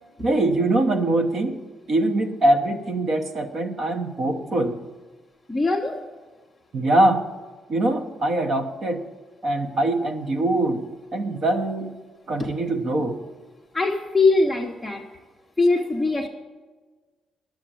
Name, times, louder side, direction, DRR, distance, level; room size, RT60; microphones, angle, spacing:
voice 1, 0.2-1.6 1.9-4.8 6.7-7.2 7.7-9.0 9.4-10.8 11.1-11.9 12.3-13.2, right 1 dB, 40° right, 5 dB, 1.1 m, -23 dB
voice 2, 5.5-6.0 12.4-12.5 13.7-15.0 15.6-16.3, left 3 dB, 5° left, -2 dB, 0.9 m, -21 dB
11.0 x 7.6 x 9.0 m, 1.3 s
cardioid pair, 170°, 0 cm